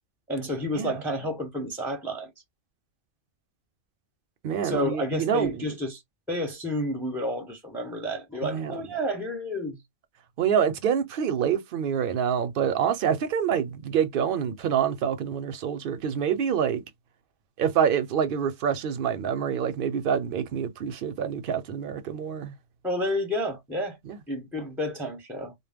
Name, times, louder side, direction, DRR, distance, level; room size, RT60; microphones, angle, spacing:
voice 1, 0.3-2.3 4.6-6.0 6.3-9.8 22.8-24.0 24.3-25.5, left 1 dB, ahead, 0.6 m, -30 dB
voice 2, 4.4-5.6 8.4-8.8 10.4-16.8 17.6-22.5 24.1-24.2, right 8 dB, 60° right, 0.7 m, -26 dB
2.1 x 2.1 x 3.4 m
omnidirectional pair, 1.2 m